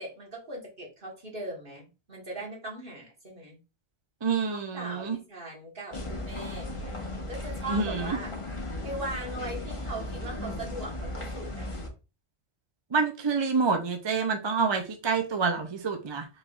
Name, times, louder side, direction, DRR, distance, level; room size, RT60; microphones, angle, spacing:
voice 1, 0.0-3.6 4.5-6.9 7.3-8.3 8.8-11.7, right 1 dB, 50° right, 2.0 m, -39 dB
voice 2, 4.2-5.2 7.7-8.2 12.9-16.3, right 5 dB, 30° right, 0.5 m, -27 dB
sound 1, 5.9-11.9, left 1 dB, 30° left, 1.1 m, -36 dB
4.8 x 4.1 x 2.4 m
omnidirectional pair, 1.2 m